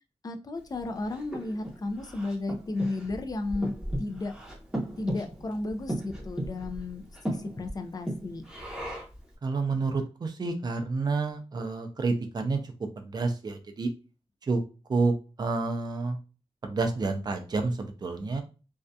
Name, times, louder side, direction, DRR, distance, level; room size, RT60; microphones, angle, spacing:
voice 1, 0.2-3.7 4.0-4.3 5.0-8.4, left 2 dB, 35° left, 6 dB, 0.4 m, -33 dB
Breathing, 0.7-9.3, right 1 dB, 5° right, 0.8 m, -37 dB
voice 2, 9.4-12.6 13.0-13.9 14.5-14.6 14.9-16.2 16.6-18.4, right 3 dB, 40° right, 5 dB, 0.5 m, -29 dB
2.6 x 2.3 x 2.2 m, 0.33 s
wide cardioid pair, 135°, 11 cm